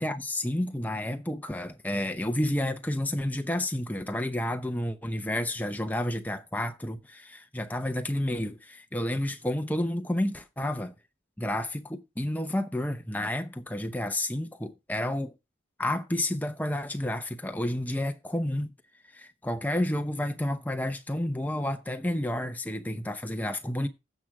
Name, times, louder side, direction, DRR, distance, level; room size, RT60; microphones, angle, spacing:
voice 1, 0.0-10.9 11.4-15.3 15.8-18.7 19.1-23.9, left 1 dB, 10° left, 0.7 m, -30 dB
15.0 x 6.1 x 3.5 m
head